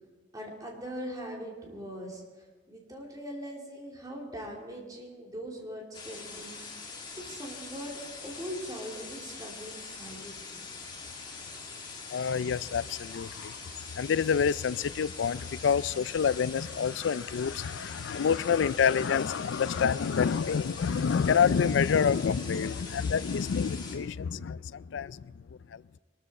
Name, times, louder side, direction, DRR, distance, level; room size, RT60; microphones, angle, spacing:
voice 1, 0.3-10.6, equal, 20° right, 2.8 m, -41 dB
sound 1, 5.9-24.0, left 4 dB, 25° left, 2.2 m, -43 dB
voice 2, 12.1-25.3 25.7-26.0, left 6 dB, 75° left, 0.4 m, -28 dB
22.5 x 13.0 x 4.2 m
head